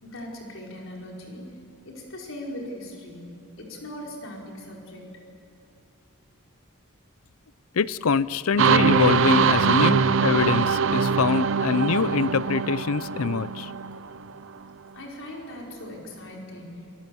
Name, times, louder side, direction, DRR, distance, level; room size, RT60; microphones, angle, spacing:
voice 1, 0.0-1.5 1.8-5.0 14.9-16.9, left 1 dB, 65° left, -1 dB, 5.0 m, -39 dB
voice 2, 7.7-13.7, left 5 dB, 80° left, 18 dB, 0.6 m, -24 dB
sound 1, 8.6-14.3, right 5 dB, 60° right, 0.7 m, -22 dB
27.0 x 18.5 x 7.9 m, 2.8 s
head